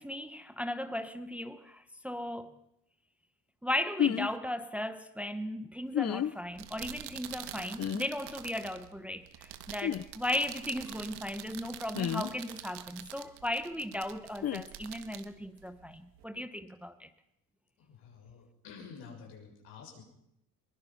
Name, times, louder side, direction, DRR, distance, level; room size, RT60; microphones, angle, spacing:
voice 1, 0.0-2.5 3.6-17.1, left 1 dB, 5° right, 0.9 m, -36 dB
sound 1, 4.0-4.3 5.9-6.3 7.8-8.0 9.8-10.0 11.9-12.3 14.4-14.6, left 10 dB, 40° left, 0.7 m, -30 dB
sound 2, 6.4-16.2, right 12 dB, 75° right, 1.5 m, -47 dB
voice 2, 17.8-20.0, left 5 dB, 80° left, 6.9 m, -50 dB
22.0 x 21.0 x 5.7 m
cardioid pair, 125°, 40 cm